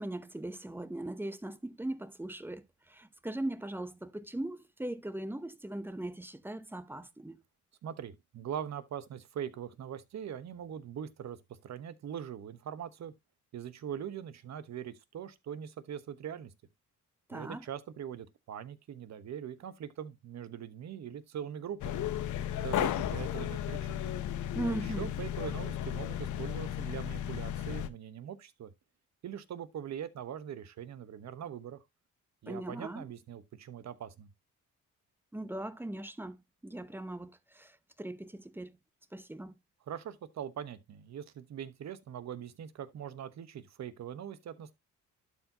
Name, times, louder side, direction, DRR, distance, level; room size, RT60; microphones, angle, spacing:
voice 1, 0.0-7.4 17.3-17.7 24.5-25.1 32.5-33.1 35.3-36.4 36.6-38.7 39.1-39.5, right 1 dB, 5° right, 0.8 m, -39 dB
voice 2, 7.8-11.4 11.6-13.1 13.5-16.5 17.3-22.0 22.6-24.0 24.6-28.7 29.2-31.8 32.4-34.3 39.9-44.8, right 9 dB, 60° right, 1.1 m, -42 dB
sound 1, 21.8-27.9, left 11 dB, 70° left, 0.8 m, -34 dB
12.0 x 4.6 x 2.9 m
cardioid pair, 95°, 31 cm